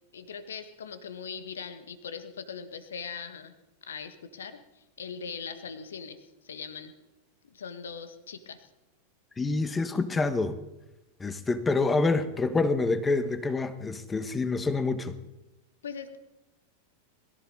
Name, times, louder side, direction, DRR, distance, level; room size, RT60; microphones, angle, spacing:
voice 1, 0.1-3.5 3.8-6.9 7.4-8.7 15.8-16.2, left 6 dB, 65° left, 10 dB, 1.6 m, -40 dB
voice 2, 9.4-10.6 11.2-15.2, left 3 dB, 15° left, 12 dB, 1.3 m, -27 dB
22.0 x 14.0 x 4.2 m, 0.98 s
figure-of-eight pair, 90°, 0 cm